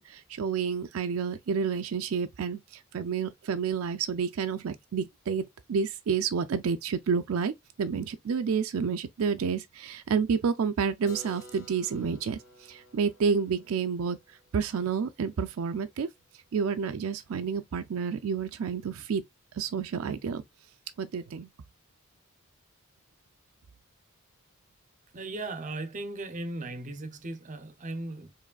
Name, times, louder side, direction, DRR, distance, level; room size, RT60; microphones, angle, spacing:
voice 1, 0.0-16.1 16.5-19.2 19.5-20.4 21.0-21.5, right 6 dB, 75° right, 0.4 m, -30 dB
Keyboard (musical), 11.1-16.7, left 1 dB, 65° left, 2.5 m, -53 dB
voice 2, 25.1-28.3, right 2 dB, 35° right, 0.6 m, -37 dB
4.8 x 3.1 x 2.3 m
head